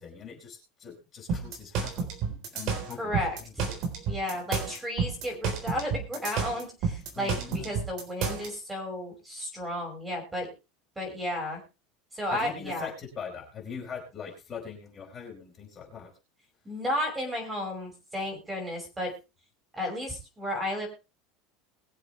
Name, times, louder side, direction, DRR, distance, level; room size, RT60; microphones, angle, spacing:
voice 1, 0.0-3.2 3.4-3.8 7.1-7.8 12.3-16.1, left 6 dB, 25° left, -1 dB, 4.8 m, -42 dB
sound 1, 1.3-8.5, right 5 dB, 50° right, 3.9 m, -30 dB
voice 2, 3.0-3.7 4.1-10.5 11.0-11.6 12.1-12.9 16.6-19.1 19.7-20.9, left 1 dB, 10° right, 1 dB, 5.5 m, -33 dB
22.0 x 7.5 x 3.3 m, 0.29 s
supercardioid pair, 155°, 0 cm